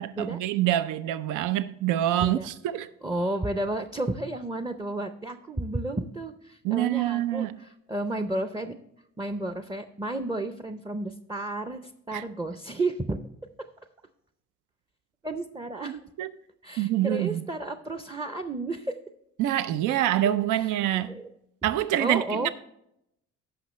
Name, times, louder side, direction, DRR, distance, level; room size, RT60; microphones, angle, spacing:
voice 1, 0.0-2.9 6.6-7.6 12.1-12.2 15.9-16.3 16.8-17.4 19.4-21.2 21.6-22.5, right 13 dB, 85° right, 0.5 m, -26 dB
voice 2, 2.1-2.5 3.0-8.7 9.2-13.2 13.6-13.7 15.2-16.0 16.6-19.0 19.9-20.0 20.6-21.2 22.0-22.5, right 2 dB, 15° right, 0.5 m, -32 dB
15.5 x 5.7 x 3.1 m
cardioid pair, 90°, 30 cm